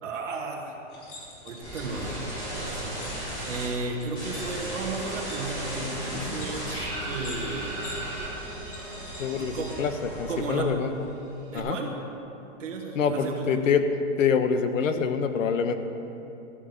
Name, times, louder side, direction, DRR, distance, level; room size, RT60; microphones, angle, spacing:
voice 1, 0.0-0.8 1.4-3.0 3.4-7.9 9.4-9.8 10.3-10.8 11.5-11.9 12.6-13.7, right 3 dB, 75° right, 0 dB, 2.4 m, -34 dB
sound 1, 0.9-10.5, left 2 dB, 65° left, 3.6 m, -47 dB
sound 2, 1.6-3.7 4.1-10.7 11.0-11.6, right 1 dB, 10° left, 2.6 m, -35 dB
voice 2, 9.2-11.1 11.5-11.8 12.9-13.9 14.2-15.7, left 6 dB, 85° left, 9 dB, 1.2 m, -26 dB
13.5 x 6.4 x 8.8 m, 2.8 s
hypercardioid pair, 175°, 38 cm